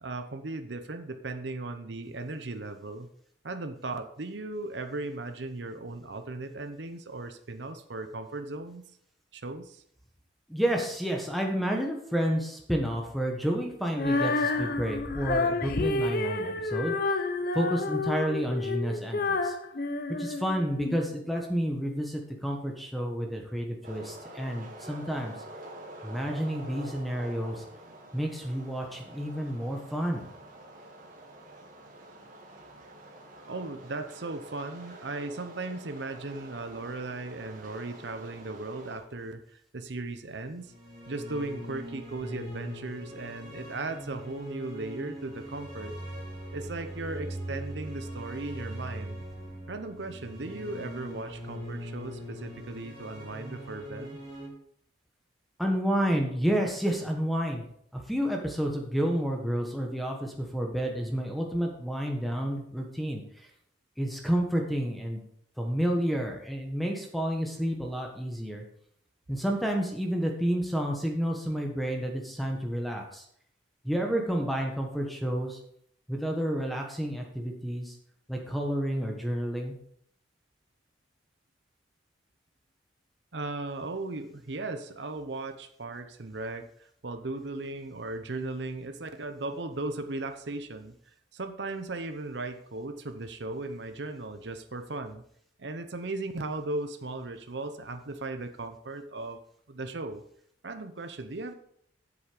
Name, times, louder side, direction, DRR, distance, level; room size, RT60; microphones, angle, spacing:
voice 1, 0.0-3.1 3.4-8.8 9.3-9.8 33.5-40.7 41.1-46.0 46.5-49.2 49.7-54.2 83.3-86.7 87.0-90.9 91.3-95.2 95.6-99.4 99.7-100.2 100.6-101.5, right 2 dB, 65° right, 8 dB, 0.8 m, -37 dB
voice 2, 10.5-17.0 17.5-19.5 20.2-25.3 26.0-27.6 28.1-30.3 55.6-57.6 57.9-63.2 64.0-65.2 65.6-68.6 69.3-73.2 73.8-75.6 76.1-77.9 78.3-79.7, equal, ahead, 1 dB, 1.2 m, -30 dB
Female singing, 13.9-21.0, left 3 dB, 50° left, 0.7 m, -30 dB
sound 1, 23.8-39.0, right 1 dB, 45° right, 1.9 m, -47 dB
sound 2, 40.7-54.5, equal, 25° right, 2.6 m, -41 dB
8.2 x 7.3 x 5.1 m, 0.67 s
head